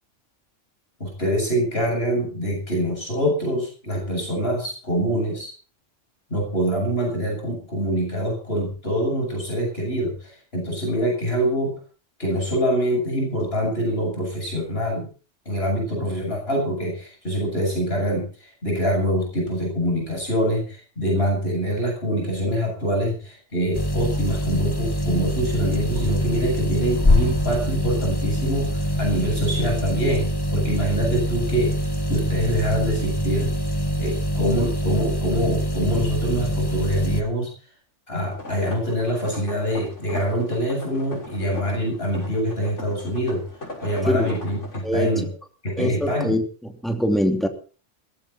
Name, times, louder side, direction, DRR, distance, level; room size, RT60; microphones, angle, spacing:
voice 1, 1.0-5.5 6.3-11.7 12.2-15.0 15.4-31.7 32.1-33.5 34.0-37.5 38.1-43.4 43.8-45.3 45.6-46.4, equal, 55° left, 8.0 m, -25 dB
sound 1, 23.7-37.2, equal, 20° left, 1.4 m, -24 dB
sound 2, 38.3-44.9, left 1 dB, 75° left, 6.3 m, -39 dB
voice 2, 44.1-44.4 44.8-45.2 45.8-47.5, left 1 dB, ahead, 2.9 m, -23 dB
18.0 x 15.5 x 4.4 m
omnidirectional pair, 1.2 m